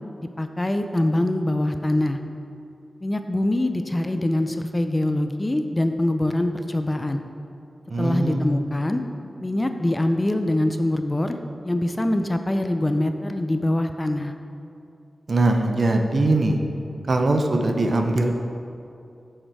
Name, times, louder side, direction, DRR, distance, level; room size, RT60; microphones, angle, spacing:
voice 1, 0.2-2.2 3.0-7.2 8.0-9.0 9.4-11.4 11.6-14.3, left 1 dB, 20° left, 7 dB, 0.4 m, -24 dB
voice 2, 7.9-8.7 15.3-16.6 17.1-18.3, right 2 dB, 55° right, 4 dB, 0.7 m, -21 dB
7.7 x 6.6 x 4.7 m, 2.6 s
wide cardioid pair, 100°, 0 cm